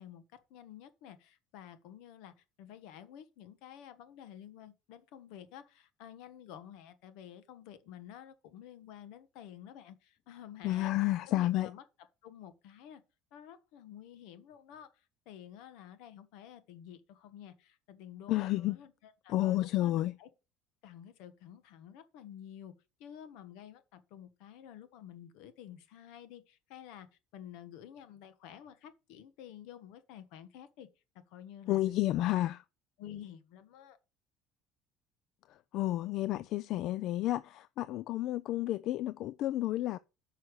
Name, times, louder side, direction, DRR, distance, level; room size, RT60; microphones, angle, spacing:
voice 1, 0.0-10.9 11.3-11.8 12.2-13.0 13.3-20.3 20.8-22.7 23.0-27.1 27.3-30.9 31.1-31.8 32.1-32.5 33.0-34.0, left 10 dB, 75° left, 1.3 m, -51 dB
voice 2, 10.6-11.7 18.3-18.8 19.3-20.2 31.7-32.6 35.5-40.0, left 15 dB, 55° left, 0.4 m, -31 dB
9.9 x 5.7 x 4.7 m
cardioid pair, 150°, 0 cm